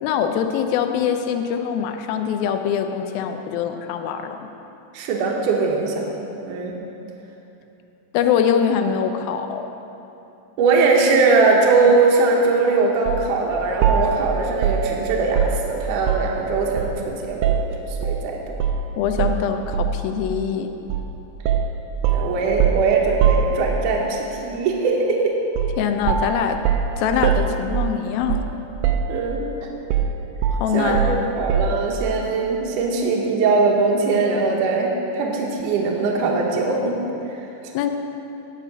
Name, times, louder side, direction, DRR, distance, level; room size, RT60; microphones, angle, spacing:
voice 1, 0.0-4.5 8.1-9.7 19.0-20.7 25.8-26.6 27.0-28.5 30.5-31.3 37.7-37.9, left 7 dB, 85° left, 6 dB, 2.4 m, -23 dB
voice 2, 4.9-6.1 6.4-6.7 10.6-18.4 22.0-25.4 29.1-29.7 30.7-37.0 37.3-37.7, right 3 dB, 70° right, -1 dB, 2.3 m, -21 dB
sound 1, 13.1-13.3 13.8-16.4 16.8-18.2 18.6-18.8 19.2-20.1 20.9-21.1 21.5-24.0 25.5-25.8 26.1-28.6 28.8-29.5 29.9-31.9, right 7 dB, 90° right, 1.8 m, -22 dB
9.9 x 6.9 x 5.8 m, 2.9 s
omnidirectional pair, 4.2 m